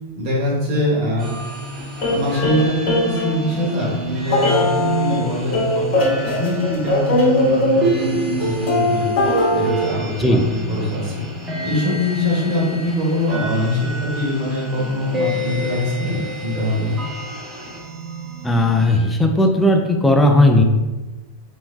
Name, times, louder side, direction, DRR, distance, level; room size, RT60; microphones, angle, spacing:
voice 1, 0.2-1.4 1.8-9.1 9.5-11.2 11.6-17.0, left 1 dB, 40° right, -6 dB, 1.0 m, -23 dB
sound 1, 1.2-19.0, right 1 dB, 15° right, 0.7 m, -29 dB
sound 2, 2.0-3.7 4.3-5.2 5.5-9.8, left 1 dB, 45° left, 1.0 m, -20 dB
voice 2, 18.4-20.6, left 1 dB, 10° left, 4 dB, 0.3 m, -15 dB
2.9 x 2.1 x 2.4 m, 1.1 s
figure-of-eight pair, 90°, 0 cm